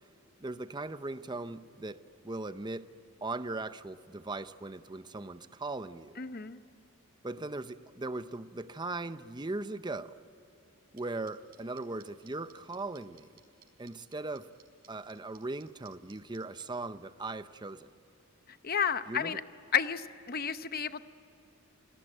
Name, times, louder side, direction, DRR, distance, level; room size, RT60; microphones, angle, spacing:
voice 1, 0.4-2.9 3.2-6.1 7.2-10.2 10.9-13.3 13.8-14.5 14.9-17.9 19.1-19.4, right 2 dB, 20° right, 12 dB, 0.7 m, -39 dB
voice 2, 6.2-6.6 18.6-19.4 19.7-21.0, left 7 dB, 45° left, 12 dB, 0.8 m, -31 dB
sound 1, 11.0-16.6, right 11 dB, 45° right, 5.0 m, -58 dB
28.5 x 19.0 x 9.0 m, 2.9 s
head